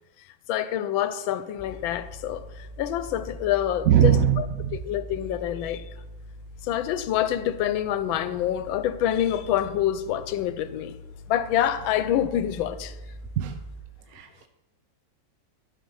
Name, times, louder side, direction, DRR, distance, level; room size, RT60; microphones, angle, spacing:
voice 1, 0.5-4.5 4.7-5.9 6.6-11.0 11.3-12.9, left 11 dB, 90° left, 1.4 m, -26 dB
sound 1, 1.6-13.8, equal, 30° left, 1.1 m, -43 dB
voice 2, 3.9-4.8 13.4-13.5 14.2-14.5, right 11 dB, 65° right, 0.9 m, -21 dB
12.0 x 5.9 x 5.6 m
omnidirectional pair, 2.1 m